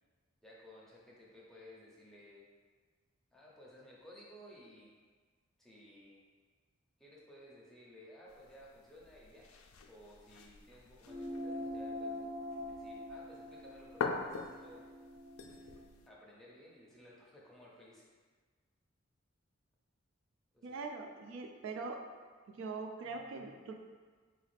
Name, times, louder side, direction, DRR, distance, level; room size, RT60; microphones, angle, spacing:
voice 1, 0.4-2.4 3.3-4.9 5.6-6.2 7.0-9.5 9.9-12.3 12.6-14.8 16.1-18.1 20.5-20.8, left 1 dB, ahead, -5 dB, 0.6 m, -57 dB
sound 1, 8.3-16.1, left 4 dB, 90° left, 0.3 m, -45 dB
sound 2, 11.1-15.9, left 1 dB, 85° right, 0.7 m, -44 dB
voice 2, 20.6-22.0 22.6-23.7, right 4 dB, 65° right, 3 dB, 0.3 m, -42 dB
4.0 x 2.4 x 3.2 m, 1.5 s
head